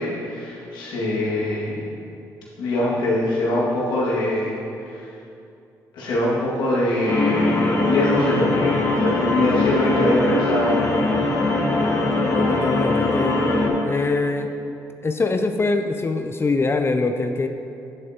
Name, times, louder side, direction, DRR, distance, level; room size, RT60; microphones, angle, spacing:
voice 1, 0.0-1.8 2.6-5.1 5.9-11.0 11.3-11.5, left 1 dB, 80° left, -6 dB, 2.0 m, -23 dB
sound 1, 7.1-13.7, left 2 dB, 50° left, 1.6 m, -21 dB
voice 2, 12.4-13.4 13.8-14.5 15.0-17.5, left 3 dB, 30° left, 6 dB, 0.5 m, -23 dB
9.9 x 7.4 x 2.9 m, 2.6 s
supercardioid pair, 60°, 8 cm